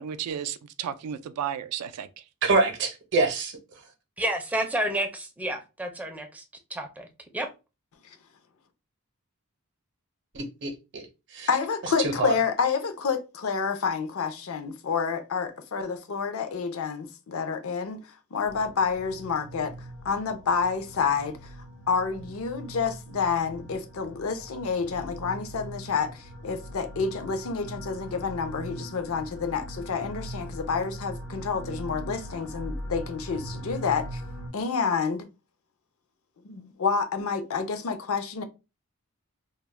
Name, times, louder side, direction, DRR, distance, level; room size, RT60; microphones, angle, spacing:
voice 1, 0.0-2.2, right 9 dB, 80° right, 0.3 m, -33 dB
voice 2, 2.4-3.6 10.3-11.0 11.3-11.5 12.0-12.3, right 3 dB, 55° right, 0.6 m, -25 dB
voice 3, 4.2-6.4 6.7-7.1 7.3-7.5, right 1 dB, 5° right, 0.4 m, -30 dB
voice 4, 11.5-18.0 18.3-19.7 20.0-21.4 21.9-34.2 34.5-35.3 36.4-38.4, left 5 dB, 65° left, 0.5 m, -29 dB
sound 1, 18.4-34.5, right 1 dB, 85° left, 0.9 m, -41 dB
2.2 x 2.0 x 3.2 m
head